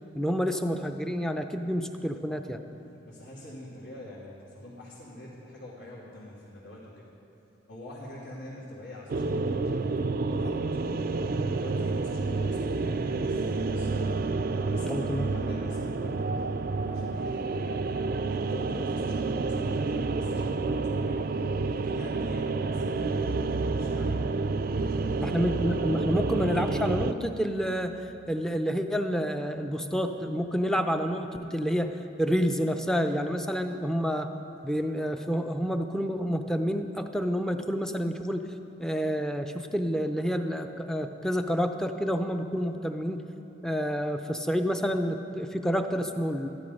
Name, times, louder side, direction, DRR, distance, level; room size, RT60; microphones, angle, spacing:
voice 1, 0.1-2.6 14.9-15.3 25.2-28.0 28.3-34.3 34.6-38.5 38.8-43.3 43.6-46.5, equal, 5° left, 6 dB, 0.5 m, -29 dB
voice 2, 2.9-7.0 7.7-10.6 11.5-14.0 14.3-21.3 21.7-24.2 24.7-25.5, left 1 dB, 70° left, -11 dB, 3.0 m, -45 dB
sound 1, 9.1-27.1, right 3 dB, 50° right, 0.4 m, -29 dB
14.0 x 12.0 x 5.4 m, 2.9 s
head